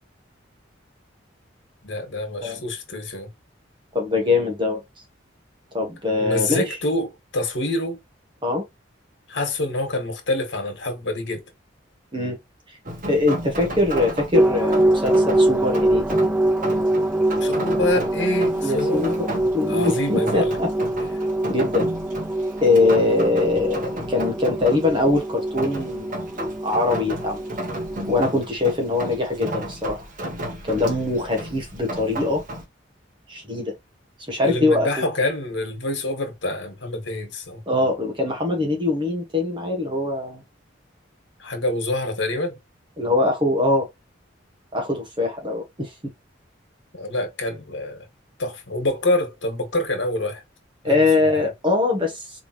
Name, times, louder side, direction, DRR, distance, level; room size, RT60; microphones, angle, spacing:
voice 1, 1.8-3.3 6.2-8.0 9.3-11.4 17.4-20.6 34.4-37.6 41.4-42.6 46.9-48.0 48.4-50.4 50.8-51.0, left 2 dB, 70° left, 1.8 m, -26 dB
voice 2, 3.9-4.8 5.7-6.8 8.4-8.6 12.1-12.4 13.1-16.1 18.6-19.2 19.5-20.7 21.5-21.9 22.6-26.2 26.6-27.4 28.1-30.0 30.6-32.4 33.3-33.7 34.3-35.1 37.7-40.4 43.0-43.9 44.7-45.9 50.8-52.4, left 2 dB, 25° right, 1.5 m, -22 dB
Rain, 12.9-32.6, right 1 dB, 45° right, 1.5 m, -33 dB
sound 1, 14.3-28.1, right 1 dB, 5° right, 0.3 m, -24 dB
4.7 x 3.5 x 3.0 m
head